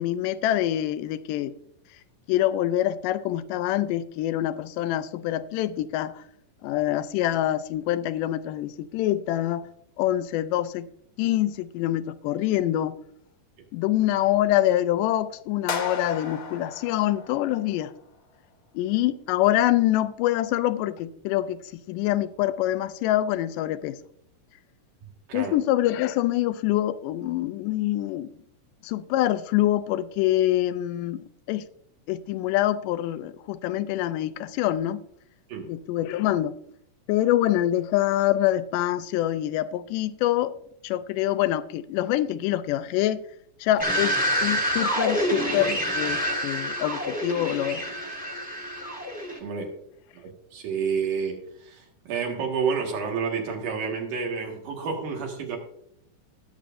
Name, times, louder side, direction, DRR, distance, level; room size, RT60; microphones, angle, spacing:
voice 1, 0.0-1.5 2.3-6.2 6.6-9.7 10.0-10.9 11.2-13.0 13.7-17.9 18.7-21.6 21.9-24.0 25.3-28.3 28.8-31.7 32.1-35.0 35.7-36.5 37.1-40.5 40.8-43.2 43.6-47.8, left 13 dB, 85° left, 2.2 m, -25 dB
sound 1, 15.7-17.9, left 5 dB, 55° left, 1.7 m, -35 dB
sound 2, 43.8-49.4, equal, 5° right, 1.1 m, -27 dB
voice 2, 49.4-49.7 50.5-55.6, right 5 dB, 80° right, 3.3 m, -29 dB
19.0 x 7.2 x 2.5 m
omnidirectional pair, 3.7 m